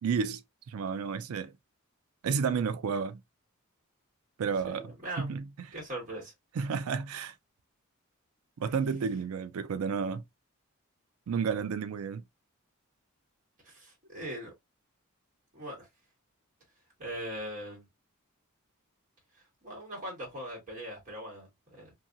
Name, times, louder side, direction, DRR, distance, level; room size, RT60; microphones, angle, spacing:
voice 1, 0.0-0.4 0.7-1.5 2.2-3.2 4.4-4.9 5.2-5.4 6.5-7.3 8.6-10.2 11.3-12.2, right 6 dB, 85° right, 0.4 m, -31 dB
voice 2, 4.7-5.3 5.7-6.3 13.6-14.5 15.5-15.9 17.0-17.8 19.6-21.9, right 1 dB, 40° right, 1.7 m, -40 dB
2.8 x 2.8 x 2.4 m
head